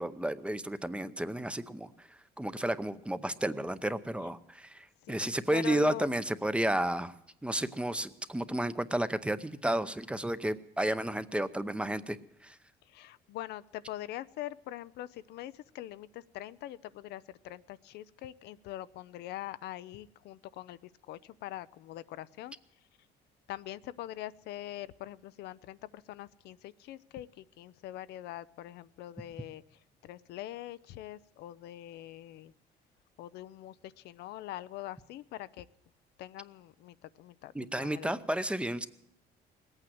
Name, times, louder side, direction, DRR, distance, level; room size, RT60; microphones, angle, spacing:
voice 1, 0.0-2.1 2.4-7.1 7.4-12.2 12.4-12.6 37.5-38.9, right 1 dB, 5° right, 13 dB, 0.7 m, -32 dB
voice 2, 5.0-6.1 12.9-20.8 21.1-22.5 23.5-29.6 30.0-32.5 33.2-35.7 36.2-38.2, left 14 dB, 75° left, 15 dB, 0.6 m, -43 dB
19.5 x 8.9 x 7.7 m, 0.80 s
cardioid pair, 110°, 17 cm